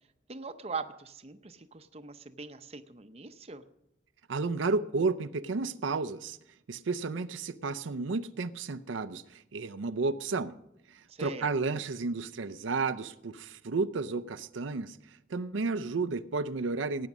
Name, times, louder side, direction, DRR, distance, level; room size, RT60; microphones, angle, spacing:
voice 1, 0.3-3.6 11.1-11.5, right 4 dB, 35° right, 9 dB, 0.7 m, -41 dB
voice 2, 4.3-6.4 6.7-10.5 10.9-17.1, right 3 dB, 85° right, 11 dB, 0.6 m, -32 dB
17.5 x 9.4 x 6.1 m, 0.83 s
head